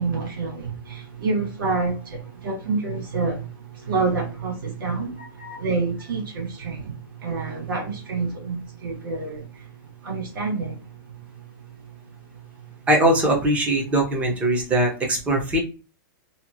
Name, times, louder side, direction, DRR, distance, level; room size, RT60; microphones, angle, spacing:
voice 1, 0.0-5.2 5.5-6.9 7.2-9.6 10.0-10.8, right 4 dB, 70° right, 1.4 m, -27 dB
voice 2, 5.2-5.6 12.9-15.6, right 1 dB, 10° right, 0.6 m, -21 dB
2.8 x 2.3 x 2.5 m
hypercardioid pair, 160°, 12 cm